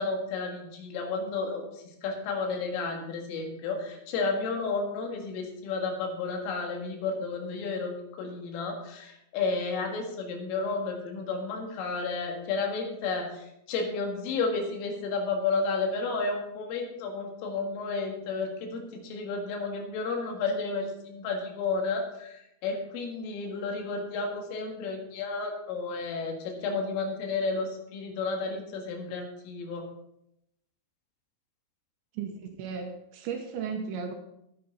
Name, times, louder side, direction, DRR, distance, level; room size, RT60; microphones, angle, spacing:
voice 1, 0.0-1.7 2.0-29.9, left 4 dB, 80° left, 3 dB, 4.2 m, -32 dB
voice 2, 32.1-34.1, right 6 dB, 75° right, 3 dB, 3.0 m, -35 dB
14.0 x 9.1 x 4.1 m, 0.81 s
omnidirectional pair, 5.8 m